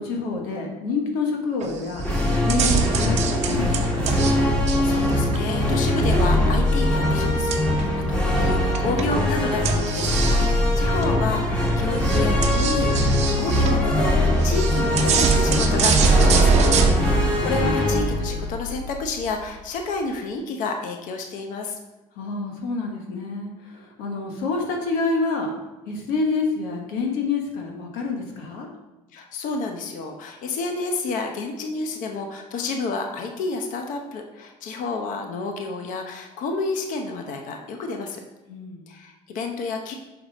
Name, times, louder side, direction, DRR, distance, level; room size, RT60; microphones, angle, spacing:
voice 1, 0.0-2.1 2.4-4.1 22.1-25.5 25.8-28.7 38.5-38.8, left 3 dB, 85° left, 1 dB, 1.3 m, -28 dB
sound 1, 1.6-1.9 2.2-4.3 4.7-5.9 7.5-8.0 8.7-9.1 9.6-10.5 11.0-11.1 11.6-11.7 12.0-13.8 14.4-16.9, right 5 dB, 50° right, 0.8 m, -23 dB
sound 2, 2.0-19.4, left 1 dB, 5° left, 1.6 m, -22 dB
voice 2, 4.8-16.6 17.1-21.8 29.1-38.2 38.9-39.9, left 3 dB, 65° left, 4 dB, 0.9 m, -30 dB
6.0 x 4.6 x 4.1 m, 1.0 s
cardioid pair, 105°, 14 cm